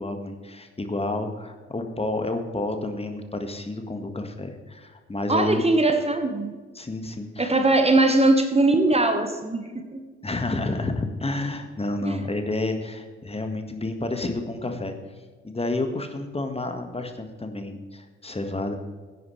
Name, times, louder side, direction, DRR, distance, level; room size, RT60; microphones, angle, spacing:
voice 1, 0.0-5.6 6.8-7.6 10.2-14.9 15.4-18.7, left 2 dB, 20° left, 5 dB, 1.7 m, -30 dB
voice 2, 5.3-6.5 7.4-10.0 12.0-12.2, right 2 dB, 20° right, 6 dB, 1.4 m, -21 dB
16.5 x 9.5 x 3.3 m, 1.4 s
figure-of-eight pair, 40°, 30 cm